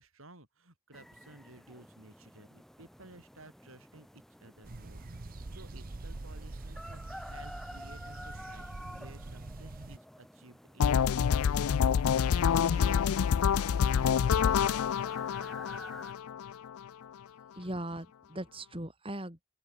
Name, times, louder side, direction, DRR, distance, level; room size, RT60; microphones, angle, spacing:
voice 1, 0.0-5.0 5.3-11.9 12.4-14.7, right 2 dB, 75° right, 7.7 m, -55 dB
sound 1, 0.9-16.1, equal, ahead, 4.1 m, -51 dB
sound 2, 4.6-10.0, right 2 dB, 40° right, 0.8 m, -44 dB
sound 3, 10.8-16.8, left 7 dB, 90° left, 0.4 m, -27 dB
voice 2, 17.6-19.4, right 1 dB, 25° right, 3.6 m, -39 dB
open air
head